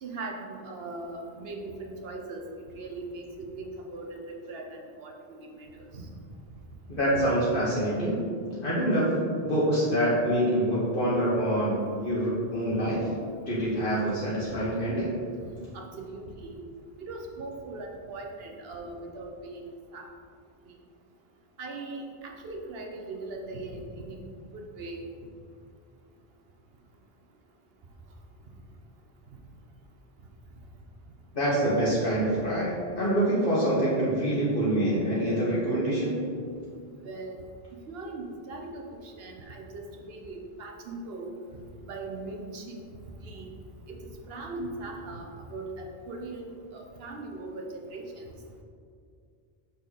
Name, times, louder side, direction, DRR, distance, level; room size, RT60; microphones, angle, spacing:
voice 1, 0.0-2.4 2.7-6.1 15.7-16.6 17.0-19.6 19.9-20.1 21.6-24.2 24.5-25.0 37.0-37.4 37.9-41.3 41.8-42.8 43.2-43.5 43.9-44.0 44.3-46.5 46.7-48.3, right 2 dB, 65° right, 2 dB, 1.1 m, -39 dB
voice 2, 6.9-8.2 8.6-9.1 9.4-13.0 13.5-15.1 31.3-36.2, right 1 dB, 55° left, -10 dB, 1.7 m, -26 dB
6.5 x 5.6 x 4.1 m, 2.3 s
omnidirectional pair, 1.1 m